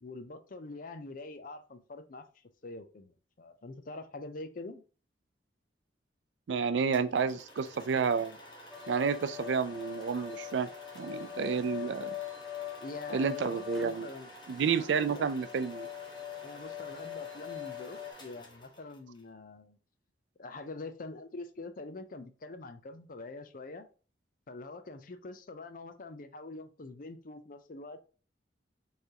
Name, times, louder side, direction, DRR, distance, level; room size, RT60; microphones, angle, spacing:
voice 1, 0.0-4.8 12.8-14.3 14.7-15.3 16.4-19.8 20.4-23.9 24.5-28.0, left 2 dB, 50° left, 0.6 m, -45 dB
voice 2, 6.5-8.4 8.9-10.7 11.0-12.1 13.1-14.1 14.5-15.9, right 6 dB, 90° right, 0.4 m, -30 dB
sound 1, 6.9-19.2, equal, 25° left, 1.2 m, -51 dB
sound 2, 8.7-18.1, left 13 dB, ahead, 0.4 m, -43 dB
4.4 x 3.3 x 2.8 m
head